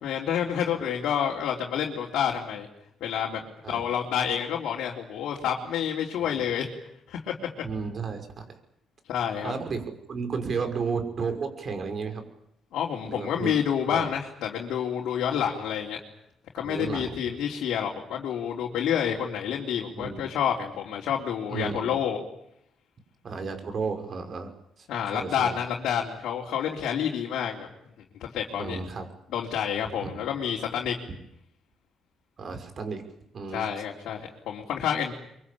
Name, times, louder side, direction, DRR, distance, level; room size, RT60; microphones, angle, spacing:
voice 1, 0.0-2.7 3.0-3.4 3.7-6.7 7.1-7.3 9.1-9.5 12.7-16.0 16.5-22.2 24.9-27.7 28.2-28.8 29.3-30.9 33.5-35.1, left 8 dB, 80° left, -2 dB, 3.7 m, -28 dB
voice 2, 7.6-8.6 9.4-12.2 13.0-13.5 13.9-14.1 15.3-15.4 16.6-17.1 19.9-20.3 21.5-22.0 23.2-24.5 24.8-24.9 25.1-25.6 28.6-29.1 30.0-30.3 32.4-33.0 33.3-33.7, right 5 dB, 50° right, 7 dB, 6.0 m, -33 dB
24.5 x 24.0 x 8.8 m, 0.78 s
cardioid pair, 90°, 0 cm